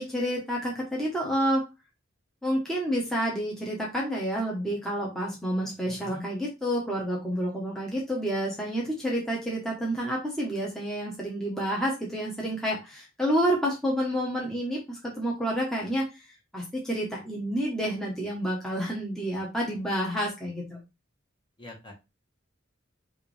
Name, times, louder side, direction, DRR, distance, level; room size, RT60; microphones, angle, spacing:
voice 1, 0.0-1.6 2.4-16.1 16.5-20.8, equal, 5° left, -4 dB, 1.1 m, -29 dB
voice 2, 5.9-6.2 21.6-21.9, left 2 dB, 25° left, 0 dB, 1.4 m, -44 dB
5.7 x 2.7 x 3.3 m, 0.26 s
head